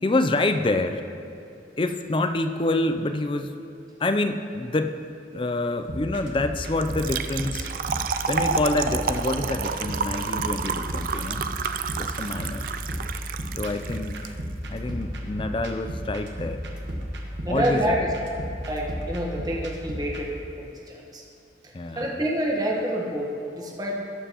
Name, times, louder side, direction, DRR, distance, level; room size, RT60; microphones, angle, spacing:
voice 1, 0.0-1.0 1.8-3.5 4.0-8.0 8.3-11.4 12.0-12.6 13.6-14.4 14.6-16.6 17.5-18.0 21.7-22.1, left 2 dB, 25° left, 8 dB, 0.4 m, -27 dB
sound 1, 5.9-20.2, equal, 75° right, 1.2 m, -34 dB
Trickle dribble / Fill (with liquid), 6.8-14.3, right 6 dB, 50° right, 0.3 m, -30 dB
voice 2, 17.4-18.1 18.7-20.3 20.6-21.2 21.9-23.9, equal, 20° right, -2 dB, 1.3 m, -27 dB
18.0 x 7.3 x 3.0 m, 2.7 s
head